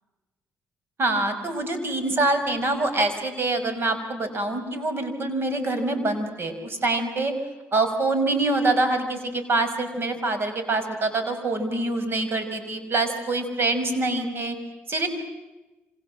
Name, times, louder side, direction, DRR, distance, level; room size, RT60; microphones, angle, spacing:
voice 1, 1.0-7.3 7.7-14.6 14.9-15.1, right 2 dB, 50° right, 9 dB, 5.8 m, -25 dB
28.5 x 26.0 x 7.6 m, 1.1 s
cardioid pair, 70°, 5 cm